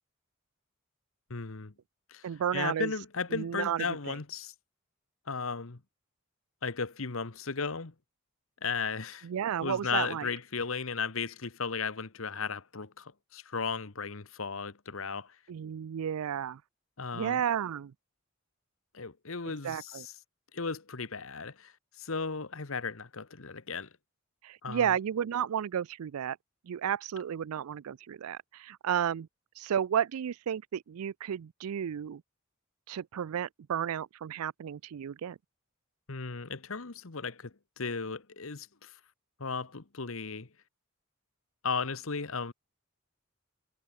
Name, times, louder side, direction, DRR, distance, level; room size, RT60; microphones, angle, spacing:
voice 1, 1.3-1.7 2.1-2.3 2.5-4.5 5.3-5.8 6.6-7.9 8.6-9.3 9.6-15.3 17.0-17.4 18.9-20.1 20.5-21.7 22.0-23.9 24.6-24.9 36.1-38.9 39.4-40.5 41.6-42.5, left 5 dB, 70° left, 1.2 m, -35 dB
voice 2, 2.2-2.9 3.3-4.1 9.2-10.3 15.5-16.6 17.1-17.9 19.6-20.1 24.4-26.4 26.7-29.3 29.6-32.2 32.9-35.4, right 8 dB, 85° right, 0.4 m, -32 dB
head